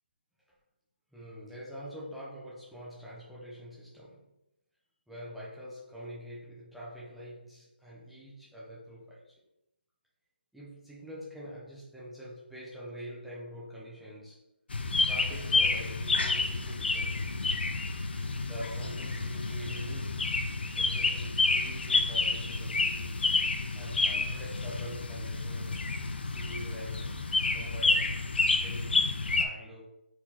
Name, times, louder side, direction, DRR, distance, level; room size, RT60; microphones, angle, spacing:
voice 1, 1.1-4.3 5.1-9.4 10.5-14.4 15.0-17.4 18.4-20.4 20.7-23.3 23.7-30.0, equal, ahead, -8 dB, 0.7 m, -45 dB
sound 1, 14.7-29.5, left 3 dB, 65° left, 0.6 m, -29 dB
4.3 x 3.8 x 2.9 m, 0.86 s
hypercardioid pair, 165°, 6 cm